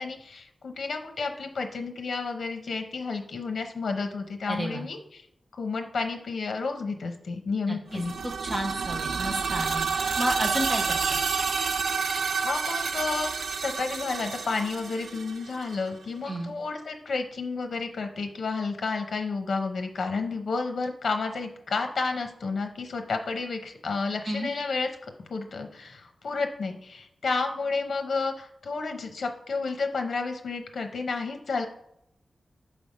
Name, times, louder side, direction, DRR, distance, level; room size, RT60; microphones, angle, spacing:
voice 1, 0.0-5.2 5.6-8.2 12.4-13.3 13.6-24.9 25.3-31.6, left 4 dB, 70° left, 5 dB, 0.8 m, -31 dB
voice 2, 4.5-4.8 7.7-8.0 8.4-11.0 16.3-16.5 24.2-24.5, equal, 20° right, 1 dB, 1.1 m, -31 dB
sound 1, 7.9-15.7, right 5 dB, 80° right, 0.4 m, -29 dB
6.2 x 3.4 x 5.4 m, 0.79 s
wide cardioid pair, 165°, 0 cm